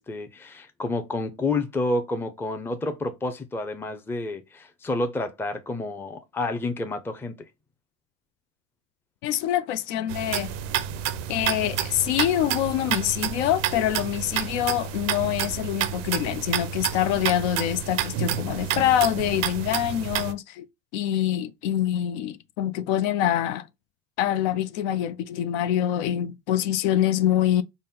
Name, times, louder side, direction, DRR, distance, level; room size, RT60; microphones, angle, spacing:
voice 1, 0.0-7.3, left 2 dB, 5° left, 0.5 m, -29 dB
voice 2, 9.2-10.5 11.3-20.7 20.9-23.7 24.2-27.6, left 11 dB, 75° left, 0.5 m, -25 dB
sound 1, 10.1-20.3, right 10 dB, 90° right, 0.5 m, -29 dB
4.0 x 2.1 x 3.7 m
supercardioid pair, 100°, 35 cm